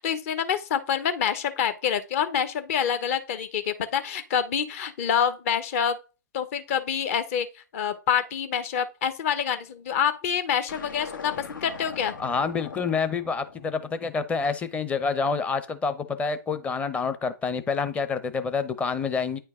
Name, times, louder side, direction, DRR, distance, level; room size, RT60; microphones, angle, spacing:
voice 1, 0.0-6.0 6.3-7.5 7.7-12.1, left 8 dB, 45° left, 1.0 m, -26 dB
sound 1, 10.7-15.1, left 5 dB, 85° left, 1.5 m, -42 dB
voice 2, 12.2-19.4, left 5 dB, 10° left, 0.7 m, -27 dB
9.2 x 4.5 x 3.7 m
hypercardioid pair, 130°, 11 cm